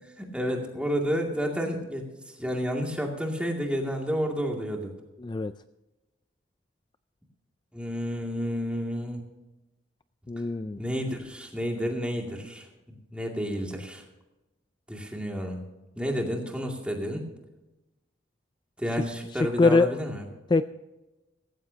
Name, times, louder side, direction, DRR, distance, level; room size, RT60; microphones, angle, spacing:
voice 1, 0.2-2.0 2.4-4.9 7.7-9.3 10.8-14.0 14.9-15.6 16.0-17.2 18.8-20.2, equal, 5° right, 0 dB, 2.3 m, -30 dB
voice 2, 5.2-5.5 10.3-10.8 19.3-19.9 20.5-20.6, left 3 dB, 25° left, 12 dB, 0.3 m, -23 dB
17.5 x 15.5 x 2.8 m, 1.0 s
head